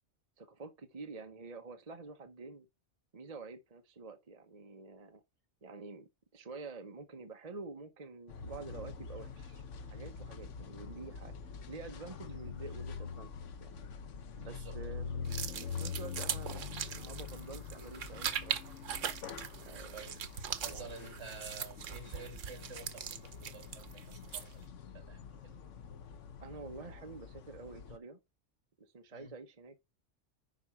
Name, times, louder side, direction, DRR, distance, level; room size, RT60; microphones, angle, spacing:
voice 1, 0.4-2.7 3.1-5.2 5.6-11.3 11.7-13.8 14.4-18.6 19.7-20.0 20.7-21.1 26.4-28.2 28.8-29.8, right 3 dB, 35° right, 0.9 m, -48 dB
sound 1, 8.3-28.0, left 6 dB, 75° left, 1.2 m, -45 dB
voice 2, 14.4-14.8 19.9-25.6 29.1-29.3, right 3 dB, 60° right, 2.5 m, -50 dB
sound 2, 15.2-24.6, right 8 dB, 80° right, 1.2 m, -41 dB
10.5 x 4.2 x 4.8 m
omnidirectional pair, 1.3 m